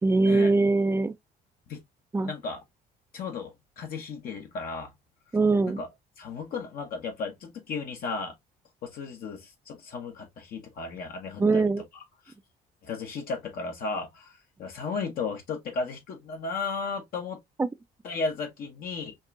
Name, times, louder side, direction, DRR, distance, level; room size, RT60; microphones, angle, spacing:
voice 1, 0.0-1.1 2.1-2.3 5.3-5.8 11.4-11.8 17.6-17.7, right 3 dB, 15° right, 0.5 m, -22 dB
voice 2, 2.2-2.6 3.1-4.9 5.8-5.9 6.2-8.4 8.8-11.6 12.8-17.4 18.0-19.2, left 4 dB, 60° left, 1.2 m, -34 dB
5.2 x 2.5 x 2.4 m
cardioid pair, 110°, 17 cm